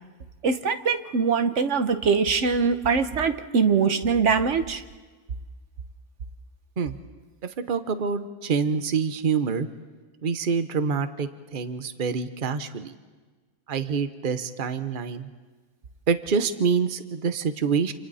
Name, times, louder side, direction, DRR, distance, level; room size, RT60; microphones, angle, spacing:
voice 1, 0.4-4.8, right 5 dB, 60° right, 9 dB, 1.3 m, -22 dB
voice 2, 7.4-9.7 10.2-12.9 13.7-15.3 16.1-17.9, right 5 dB, 40° right, 10 dB, 1.1 m, -26 dB
28.5 x 27.5 x 4.2 m, 1.4 s
omnidirectional pair, 1.5 m